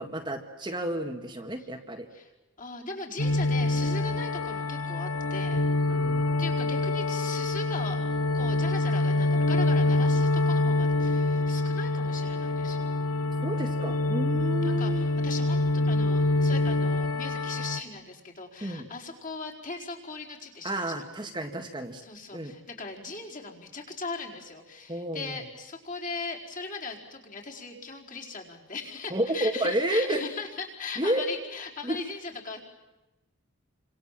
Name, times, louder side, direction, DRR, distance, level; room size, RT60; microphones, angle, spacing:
voice 1, 0.0-2.1 5.9-6.4 13.4-15.0 18.6-18.8 20.6-22.0 22.3-22.5 24.9-25.4 29.1-30.2 31.0-31.3 31.8-32.0, right 1 dB, 20° right, 3 dB, 1.9 m, -31 dB
voice 2, 2.6-5.6 6.4-8.0 8.3-12.9 14.3-21.1 22.0-32.6, left 4 dB, 35° left, -1 dB, 4.6 m, -39 dB
sound 1, 3.2-17.8, left 2 dB, 80° left, 1.5 m, -26 dB
30.0 x 26.0 x 7.6 m, 1.0 s
head